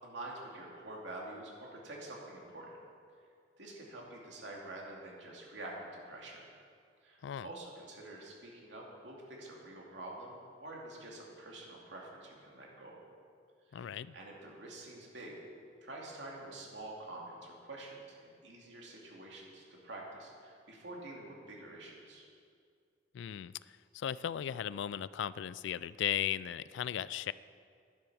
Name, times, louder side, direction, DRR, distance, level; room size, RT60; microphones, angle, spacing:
voice 1, 0.0-2.7 3.6-6.4 7.0-13.0 13.7-15.3 15.8-22.2, right 2 dB, 75° right, -2 dB, 2.6 m, -47 dB
voice 2, 13.7-14.1 23.1-23.5 23.9-27.3, left 10 dB, 75° left, 18 dB, 0.3 m, -36 dB
10.5 x 9.9 x 6.2 m, 2.2 s
head